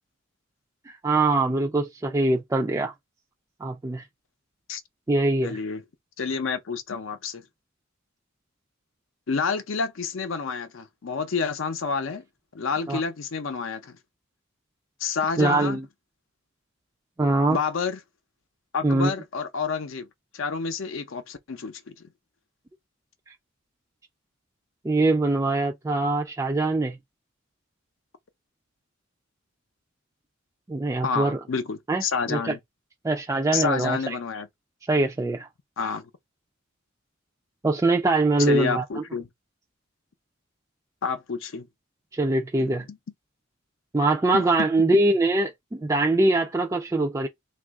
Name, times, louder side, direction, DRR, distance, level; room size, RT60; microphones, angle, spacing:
voice 1, 0.9-2.9 3.6-4.0 5.1-5.6 12.9-13.0 15.4-15.8 17.2-17.6 18.8-19.1 24.8-27.0 30.7-31.4 31.9-32.5 33.0-34.1 34.9-35.5 37.6-38.8 42.1-42.8 43.9-47.3, right 2 dB, 15° right, 0.3 m, -23 dB
voice 2, 5.4-5.8 6.2-7.4 9.3-12.2 12.5-13.9 15.0-15.8 17.5-18.0 18.7-20.1 20.3-21.9 31.0-32.6 33.5-34.5 35.8-36.1 38.4-39.3 41.0-41.7 42.6-43.0 44.3-44.4, left 5 dB, 70° left, 0.6 m, -29 dB
3.0 x 2.4 x 3.5 m
head